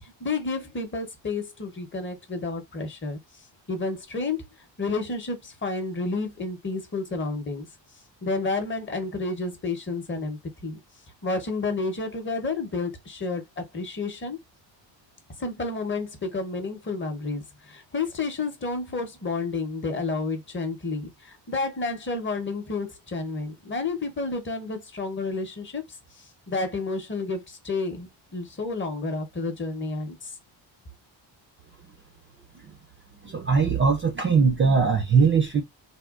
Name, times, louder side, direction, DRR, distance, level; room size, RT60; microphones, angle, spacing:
voice 1, 0.0-3.2 3.7-4.4 4.8-7.7 8.2-10.8 11.2-14.4 15.4-25.8 26.2-30.3, left 3 dB, 25° left, 0.8 m, -30 dB
voice 2, 33.2-35.6, right 5 dB, 25° right, 0.4 m, -20 dB
3.5 x 2.2 x 2.3 m
cardioid pair, 150°, 47 cm